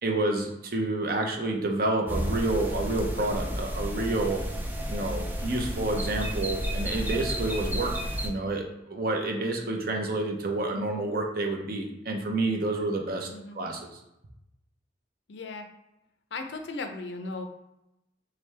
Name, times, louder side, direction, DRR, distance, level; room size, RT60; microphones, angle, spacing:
voice 1, 0.0-4.4 4.9-7.9 8.2-13.3 13.6-14.0, right 2 dB, 50° right, 2 dB, 0.6 m, -29 dB
sound 1, 2.1-8.3, equal, 10° right, 0.3 m, -32 dB
voice 2, 13.3-13.7 15.3-15.7 16.3-17.4, left 3 dB, 70° left, 6 dB, 0.5 m, -36 dB
3.5 x 3.3 x 3.2 m, 0.88 s
head